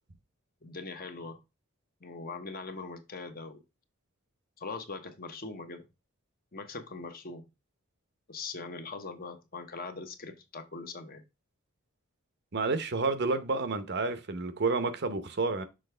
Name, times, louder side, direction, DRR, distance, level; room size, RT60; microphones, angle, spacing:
voice 1, 0.6-1.4 2.0-3.6 4.6-5.9 6.5-7.5 8.3-11.2, left 4 dB, 45° left, 1.0 m, -41 dB
voice 2, 12.5-15.6, right 3 dB, 55° right, 0.8 m, -30 dB
6.5 x 4.5 x 3.3 m
head